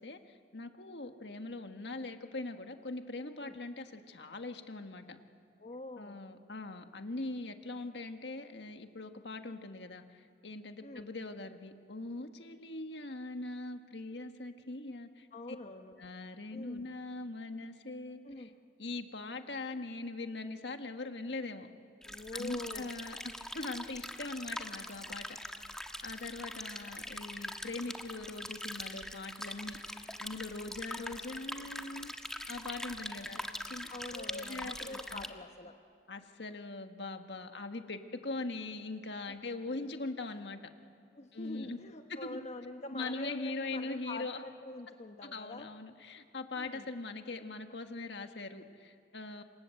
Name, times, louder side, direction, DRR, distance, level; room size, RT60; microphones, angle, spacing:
voice 1, 0.0-5.2 6.0-15.6 16.0-18.5 18.8-21.7 22.3-25.3 26.0-32.1 32.5-35.3 36.1-40.6 41.3-41.8 42.1-42.5 42.9-44.4 45.2-49.4, left 2 dB, 70° left, 6 dB, 1.7 m, -41 dB
voice 2, 5.6-6.2 10.8-11.1 15.3-16.0 16.5-16.9 18.2-18.5 22.0-22.9 33.3-33.5 33.9-35.8 41.1-45.7 46.5-46.9, left 2 dB, 40° left, 5 dB, 1.0 m, -45 dB
sound 1, 22.0-35.3, left 1 dB, 5° left, 1.3 m, -43 dB
27.5 x 27.0 x 7.9 m, 2.5 s
head